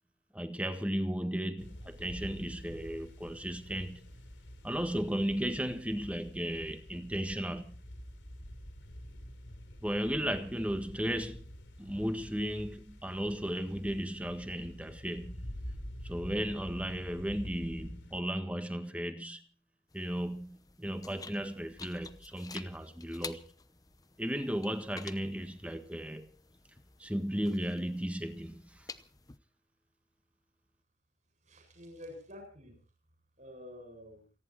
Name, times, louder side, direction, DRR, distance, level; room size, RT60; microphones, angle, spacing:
voice 1, 0.3-4.1 4.6-7.7 9.8-11.5 11.8-15.3 16.0-19.4 19.9-23.5 24.2-26.3 27.0-28.9, equal, 5° right, 1.5 m, -35 dB
sound 1, 1.6-18.2, equal, 85° left, 4.3 m, -47 dB
sound 2, 19.9-29.4, left 4 dB, 20° left, 0.8 m, -51 dB
voice 2, 31.4-32.8 33.4-34.3, left 1 dB, 40° right, 7.8 m, -49 dB
29.0 x 11.0 x 4.5 m
head